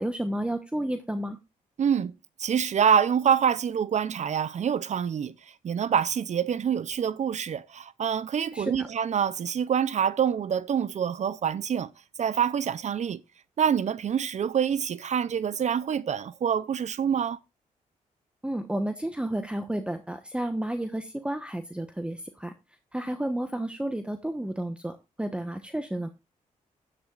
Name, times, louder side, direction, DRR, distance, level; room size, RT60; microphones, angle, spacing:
voice 1, 0.0-1.4 8.5-8.9 18.4-22.5 22.9-26.1, right 1 dB, 5° right, 1.1 m, -31 dB
voice 2, 1.8-2.1 2.4-5.3 5.6-11.9 12.2-13.2 13.6-17.4, right 8 dB, 55° right, 0.6 m, -26 dB
15.0 x 11.0 x 2.4 m
cardioid pair, 70°, 14 cm